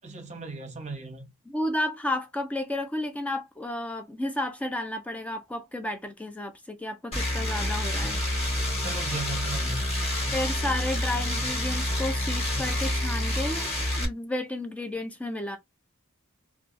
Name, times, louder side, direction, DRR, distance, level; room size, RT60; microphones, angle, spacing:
voice 1, 0.0-1.3 8.7-9.9, right 3 dB, 30° right, 0.8 m, -37 dB
voice 2, 1.5-8.2 10.3-13.7 14.0-15.6, left 1 dB, 5° left, 0.4 m, -32 dB
sound 1, 7.1-14.1, left 1 dB, 30° left, 1.1 m, -28 dB
2.7 x 2.3 x 2.4 m
head